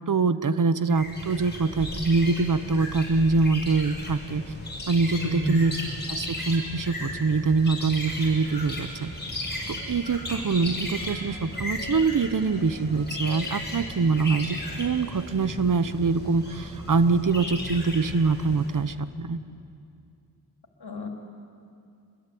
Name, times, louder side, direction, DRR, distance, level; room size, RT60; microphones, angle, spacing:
voice 1, 0.1-4.4 4.9-5.7 6.1-9.1 9.7-19.4, right 4 dB, 55° right, 13 dB, 1.0 m, -24 dB
sound 1, 0.9-18.9, left 1 dB, 25° left, 6.5 m, -35 dB
voice 2, 5.1-5.6 20.8-21.1, equal, 75° left, 2 dB, 3.4 m, -29 dB
25.5 x 22.0 x 8.5 m, 2.4 s
wide cardioid pair, 90°, 39 cm